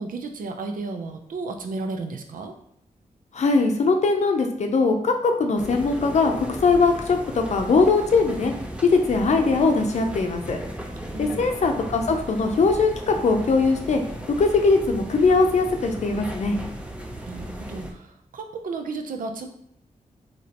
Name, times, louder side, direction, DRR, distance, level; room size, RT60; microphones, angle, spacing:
voice 1, 0.0-2.5 11.1-11.5 17.3-19.5, right 3 dB, 90° right, 5 dB, 0.6 m, -33 dB
voice 2, 3.3-8.5 8.8-10.6 11.2-14.0 14.4-16.6, left 4 dB, 55° left, 4 dB, 0.6 m, -21 dB
sound 1, 5.6-17.9, right 1 dB, 10° right, 0.6 m, -36 dB
5.0 x 2.9 x 2.9 m, 0.75 s
wide cardioid pair, 150°, 14 cm